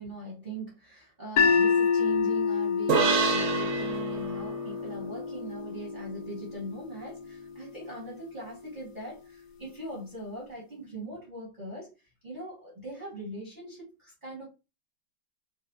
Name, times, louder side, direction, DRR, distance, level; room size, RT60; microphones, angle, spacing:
voice 1, 0.0-14.5, right 1 dB, 30° right, 0.8 m, -41 dB
sound 1, 1.4-7.5, left 6 dB, 75° left, 0.9 m, -28 dB
sound 2, 2.9-6.4, right 5 dB, 65° right, 1.2 m, -29 dB
4.0 x 2.1 x 2.6 m
omnidirectional pair, 2.3 m